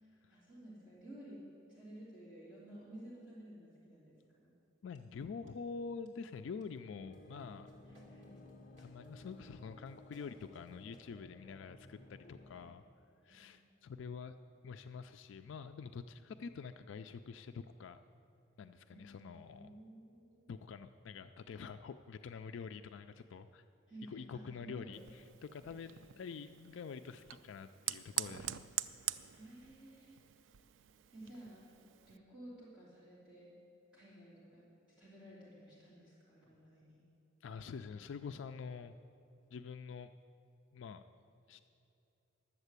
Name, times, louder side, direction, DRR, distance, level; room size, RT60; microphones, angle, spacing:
voice 1, 0.0-1.4 1.7-4.5 7.8-8.5 12.5-12.8 13.2-13.5 18.9-20.6 23.9-25.0 25.6-25.8 29.3-30.1 30.9-33.5 33.9-34.7 35.0-37.0, right 1 dB, 5° right, -11 dB, 3.0 m, -54 dB
voice 2, 4.8-7.7 8.8-12.8 13.2-14.4 14.6-18.0 18.6-19.7 20.5-23.6 24.1-28.7 37.4-39.0 39.5-40.1 40.7-41.0 41.5-41.6, left 5 dB, 70° left, 9 dB, 0.4 m, -47 dB
sound 1, 4.9-5.0 5.5-5.7 6.0-6.1 6.6-6.7 7.1-11.0, equal, 35° right, 2.2 m, -71 dB
sound 2, 7.0-12.7, left 1 dB, 40° left, 0.7 m, -57 dB
Fire, 24.9-32.2, right 12 dB, 70° right, 0.4 m, -44 dB
11.5 x 7.3 x 8.2 m, 2.8 s
head